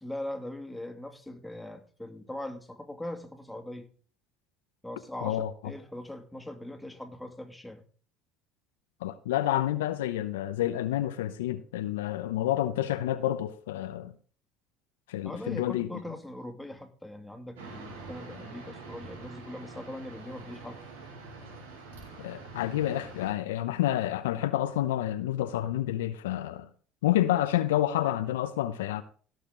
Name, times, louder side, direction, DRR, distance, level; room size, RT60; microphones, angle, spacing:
voice 1, 0.0-3.9 4.8-7.8 15.2-20.8, left 1 dB, 5° left, 2.3 m, -41 dB
voice 2, 5.2-5.5 9.0-14.1 15.1-15.9 22.2-26.7 27.0-29.0, left 13 dB, 85° left, 0.7 m, -29 dB
sound 1, 17.6-23.3, right 3 dB, 85° right, 4.3 m, -45 dB
17.0 x 6.6 x 3.8 m
hypercardioid pair, 75°, 0 cm